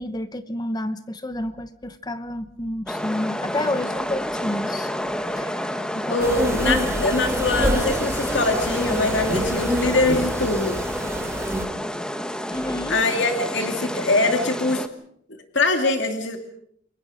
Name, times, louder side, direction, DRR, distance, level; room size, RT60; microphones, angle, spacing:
voice 1, 0.0-4.9 5.4-5.5 5.9-6.2 6.6-6.9 12.5-13.0, left 1 dB, 20° left, 11 dB, 1.0 m, -30 dB
sound 1, 2.9-14.9, equal, 5° left, 1.3 m, -29 dB
voice 2, 6.1-10.8 12.9-14.8 15.5-16.4, left 2 dB, 65° left, 5 dB, 2.6 m, -23 dB
sound 2, 6.2-11.6, equal, 15° right, 3.2 m, -27 dB
29.5 x 23.0 x 5.1 m, 0.67 s
head